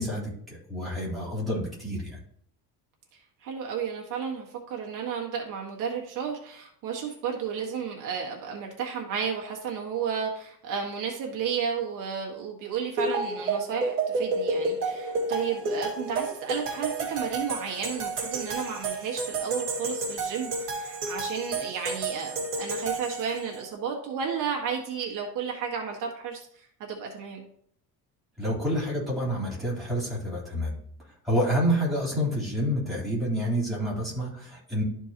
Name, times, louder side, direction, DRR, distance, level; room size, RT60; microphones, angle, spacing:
voice 1, 0.0-2.2 28.4-30.8 31.0-34.8, equal, ahead, -6 dB, 3.3 m, -28 dB
voice 2, 3.1-27.4, right 7 dB, 60° right, -1 dB, 1.6 m, -33 dB
sound 1, 13.0-23.6, right 3 dB, 35° right, 2.0 m, -31 dB
12.5 x 4.5 x 2.9 m, 0.66 s
cardioid pair, 165°, 36 cm